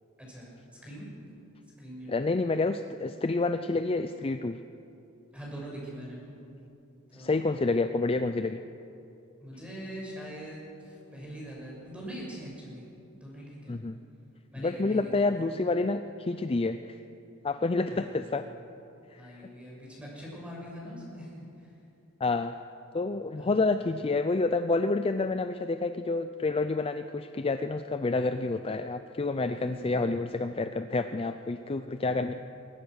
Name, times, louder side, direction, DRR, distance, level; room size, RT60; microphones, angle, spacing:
voice 1, 0.2-0.5 0.8-1.1 1.8-2.5 5.3-6.2 7.1-7.3 9.4-12.8 13.1-13.8 14.5-15.4 17.8-18.3 19.1-21.7 23.3-23.7 29.4-30.1 32.2-32.4, equal, 5° right, -4 dB, 6.8 m, -43 dB
voice 2, 2.1-4.6 7.1-8.6 13.7-14.0 14.6-17.0 17.4-18.4 19.1-19.5 22.2-22.5 22.9-32.3, left 3 dB, 25° left, 9 dB, 0.5 m, -28 dB
21.5 x 19.5 x 6.5 m, 2.8 s
head